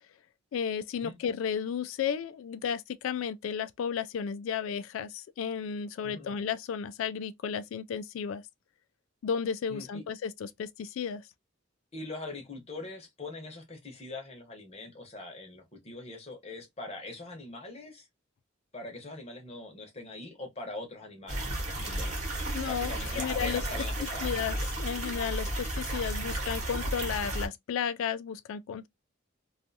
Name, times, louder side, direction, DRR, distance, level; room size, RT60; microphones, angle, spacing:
voice 1, 0.5-8.4 9.2-11.3 22.5-23.6 24.2-28.9, left 7 dB, 75° left, 0.3 m, -33 dB
voice 2, 9.7-10.0 11.9-18.1 18.7-21.5 21.8-22.2 22.7-24.3, left 2 dB, 30° left, 0.8 m, -42 dB
sound 1, 21.3-27.5, right 1 dB, 35° right, 1.1 m, -33 dB
2.5 x 2.4 x 2.6 m
head